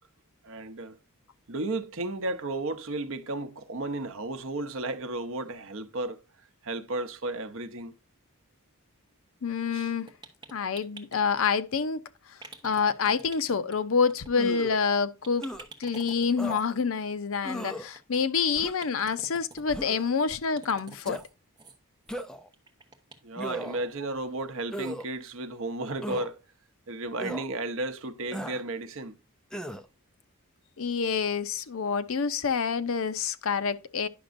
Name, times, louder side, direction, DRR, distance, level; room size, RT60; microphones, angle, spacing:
voice 1, 0.4-1.0 1.5-6.2 6.6-7.9 9.7-9.9 23.2-26.4 26.9-29.2, right 2 dB, 60° right, 0.8 m, -33 dB
voice 2, 9.4-10.1 10.5-12.0 12.3-12.4 12.6-15.5 15.8-21.2 30.8-34.1, left 5 dB, 65° left, 0.5 m, -27 dB
sound 1, 10.1-11.4 12.4-13.7 14.1-14.3 14.6-14.7 14.9-15.0 15.2-16.7 17.5-18.2 18.5-19.6 20.3-21.3 21.6-21.8 22.1-22.3 22.5-23.4 23.7-23.8 24.2-24.3, right 3 dB, 20° right, 1.1 m, -48 dB
sound 2, 14.3-14.8 15.4-15.7 16.4-16.6 17.4-17.9 18.5-18.9 19.7-20.1 21.0-21.2 22.1-22.5 23.4-23.9 24.7-25.1 26.0-26.3 27.2-27.5 28.3-28.6 29.5-29.8, equal, 5° left, 0.4 m, -36 dB
10.0 x 5.9 x 2.5 m
head